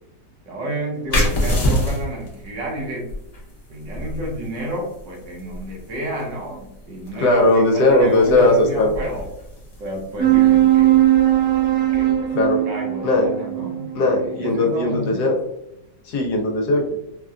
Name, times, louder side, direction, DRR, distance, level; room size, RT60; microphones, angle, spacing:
voice 1, 0.4-3.1 3.7-9.3 9.8-11.0 11.9-12.3 12.6-15.4, right 1 dB, 80° right, -1 dB, 1.6 m, -30 dB
sound 1, 1.1-12.4, left 1 dB, 50° left, 0.4 m, -29 dB
voice 2, 7.1-8.9 12.3-12.6 13.0-13.3 13.9-15.3 16.1-17.0, left 2 dB, 70° left, 1 dB, 1.1 m, -18 dB
sound 2, 10.2-15.0, right 13 dB, 35° right, 0.3 m, -19 dB
4.2 x 2.2 x 2.4 m, 0.83 s
omnidirectional pair, 1.9 m